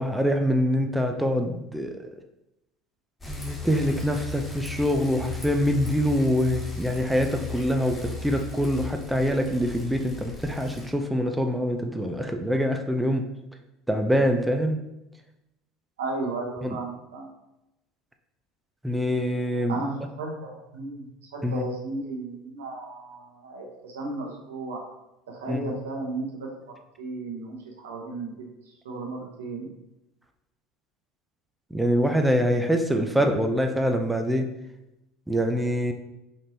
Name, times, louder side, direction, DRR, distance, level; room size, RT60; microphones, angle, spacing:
voice 1, 0.0-2.1 3.3-13.2 13.9-14.8 16.6-16.8 18.8-19.8 21.4-21.7 25.5-25.7 31.7-34.5 35.3-35.9, equal, 5° right, 4 dB, 0.4 m, -25 dB
Bicycle, 3.2-10.9, left 3 dB, 15° left, 0.9 m, -37 dB
voice 2, 16.0-17.3 19.7-24.9 25.3-28.3 28.6-29.7, right 2 dB, 90° right, 0 dB, 0.8 m, -34 dB
4.2 x 3.2 x 2.7 m, 0.91 s
hypercardioid pair, 85°, 0 cm